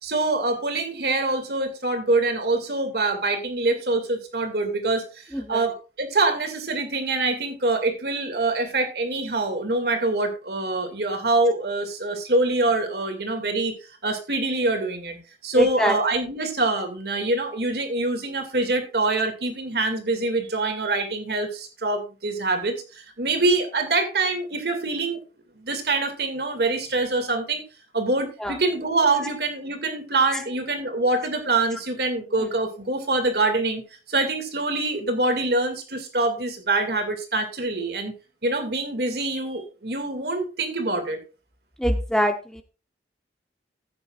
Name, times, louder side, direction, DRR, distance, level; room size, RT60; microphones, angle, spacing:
voice 1, 0.0-13.8 14.0-15.2 15.4-25.2 25.6-27.6 27.9-38.1 38.4-41.2, right 2 dB, 60° right, 6 dB, 2.3 m, -25 dB
voice 2, 5.3-5.7 15.5-16.0 28.4-28.6 29.2-29.3 30.3-30.4 32.4-32.5 41.8-42.6, equal, 5° left, 6 dB, 0.7 m, -24 dB
14.5 x 8.6 x 2.5 m, 0.32 s
head